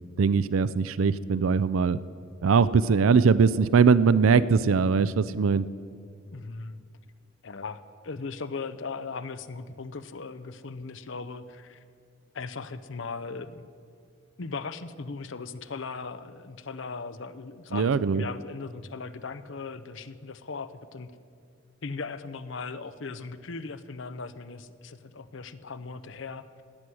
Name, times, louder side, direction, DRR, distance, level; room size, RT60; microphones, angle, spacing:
voice 1, 0.2-2.0 2.4-5.7 17.7-18.2, right 5 dB, 85° right, 17 dB, 0.4 m, -21 dB
voice 2, 6.3-6.8 7.4-11.8 12.3-13.6 14.4-21.1 21.8-26.4, left 4 dB, 65° left, 12 dB, 0.7 m, -38 dB
17.5 x 6.2 x 9.8 m, 2.2 s
head